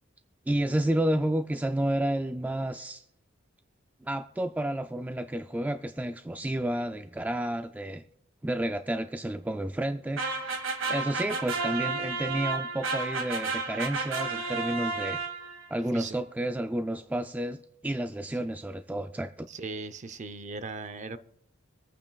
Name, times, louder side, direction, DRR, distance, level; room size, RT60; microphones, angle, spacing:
voice 1, 0.5-3.0 4.0-8.0 8.4-10.2 10.9-15.2 15.7-19.5, right 1 dB, 10° right, 0.3 m, -30 dB
sound 1, 10.2-15.7, right 4 dB, 75° right, 1.5 m, -32 dB
voice 2, 19.5-21.2, right 3 dB, 35° right, 0.7 m, -38 dB
25.0 x 8.9 x 2.3 m
head